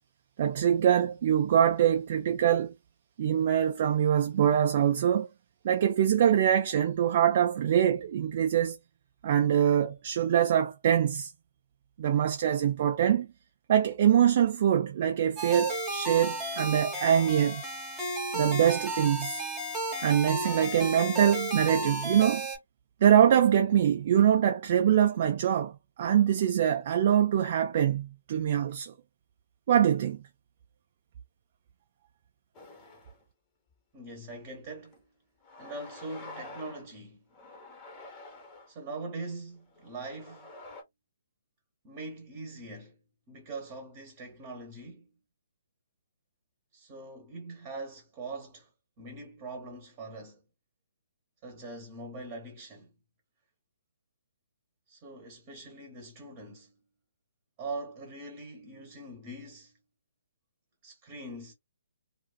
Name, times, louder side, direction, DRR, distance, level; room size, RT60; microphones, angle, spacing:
voice 1, 0.4-2.7 3.2-5.3 5.6-8.8 9.2-11.3 12.0-13.3 13.7-17.6 18.3-19.4 20.0-22.5 23.0-25.7 26.0-28.9 29.7-30.2, right 9 dB, 45° right, 0.4 m, -24 dB
sound 1, 15.4-22.6, right 1 dB, 5° right, 1.1 m, -33 dB
sound 2, 32.5-33.2 33.7-33.8 34.8-35.0 35.4-36.9 37.3-38.7 39.6-40.8, left 2 dB, 20° left, 0.8 m, -48 dB
voice 2, 33.9-35.0 35.6-37.2 38.7-40.5 41.8-43.0 43.3-45.1 46.7-48.7 49.0-50.4 51.4-52.9 54.9-56.7 57.6-59.7 60.8-61.5, right 2 dB, 25° right, 0.9 m, -42 dB
2.5 x 2.4 x 2.2 m
figure-of-eight pair, 135°, 0 cm